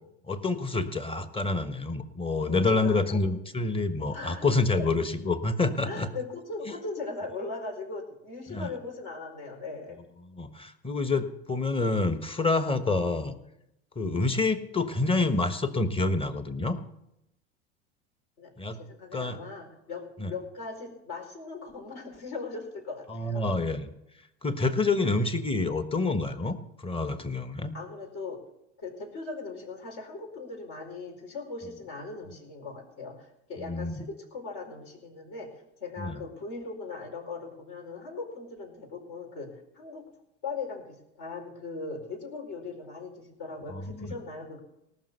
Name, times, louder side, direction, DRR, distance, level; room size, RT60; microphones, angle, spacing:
voice 1, 0.3-6.1 8.5-8.7 10.3-13.4 13.9-16.8 18.6-18.8 19.1-19.4 20.2-20.3 23.1-23.9 24.4-27.7 33.6-34.1 36.0-36.2 43.7-44.1, left 3 dB, 15° left, 10 dB, 1.2 m, -27 dB
voice 2, 2.5-3.2 4.1-4.5 4.8-4.9 5.8-10.0 18.4-23.7 25.0-25.1 27.7-28.4 28.8-40.1 40.4-44.6, left 3 dB, 60° left, 2 dB, 4.7 m, -39 dB
18.5 x 6.2 x 6.7 m, 0.83 s
hypercardioid pair, 80°, 35 cm